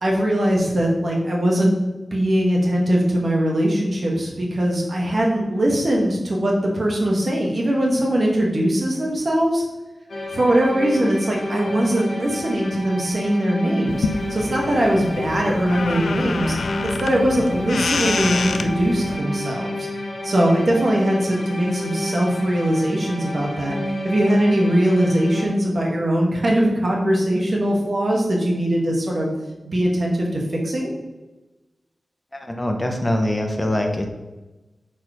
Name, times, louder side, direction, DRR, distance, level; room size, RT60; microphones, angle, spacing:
voice 1, 0.0-1.7 2.1-9.6 10.3-16.6 17.0-19.9 20.2-23.8 24.0-29.3 29.6-30.9, right 1 dB, 50° right, -1 dB, 1.4 m, -21 dB
sound 1, 10.1-25.5, equal, 70° left, 1.3 m, -30 dB
sound 2, 13.9-19.2, left 4 dB, 85° left, 0.3 m, -27 dB
voice 2, 32.3-34.1, left 1 dB, 20° left, 4 dB, 0.8 m, -23 dB
4.4 x 4.3 x 5.0 m, 1.1 s
wide cardioid pair, 100°, 0 cm